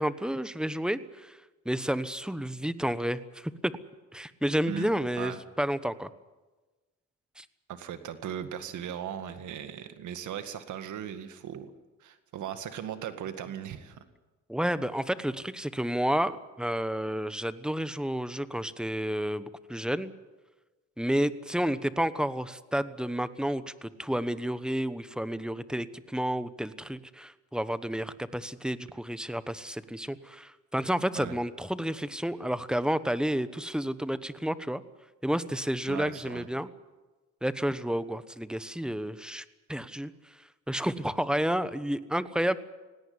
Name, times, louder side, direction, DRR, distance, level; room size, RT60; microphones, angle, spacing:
voice 1, 0.0-3.7 4.1-6.1 7.4-7.5 14.5-20.1 21.0-34.8 35.2-36.7 37.4-42.6, equal, 5° right, 14 dB, 1.1 m, -31 dB
voice 2, 7.7-11.7 12.0-14.0 31.2-31.4 35.9-36.5, right 9 dB, 75° right, 9 dB, 2.0 m, -38 dB
19.5 x 17.5 x 9.7 m, 1.2 s
cardioid pair, 90°, 30 cm